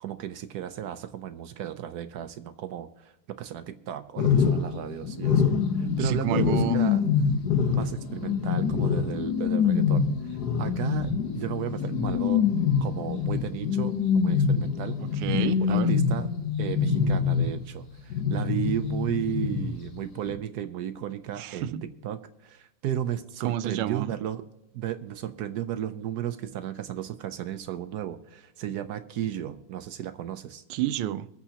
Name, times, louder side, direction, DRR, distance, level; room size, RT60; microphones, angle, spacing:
voice 1, 0.0-7.0 7.7-12.4 12.8-15.0 15.6-16.3 16.6-21.7 22.0-24.4 24.7-30.6, right 10 dB, 70° right, 0.9 m, -34 dB
sound 1, 4.2-17.8 18.1-20.0 20.3-20.4, left 6 dB, 55° left, 1.5 m, -25 dB
voice 2, 6.0-6.8 15.0-15.9 21.4-21.8 23.4-24.1 30.7-31.3, right 12 dB, 90° right, 1.4 m, -30 dB
24.0 x 8.2 x 2.9 m
omnidirectional pair, 2.3 m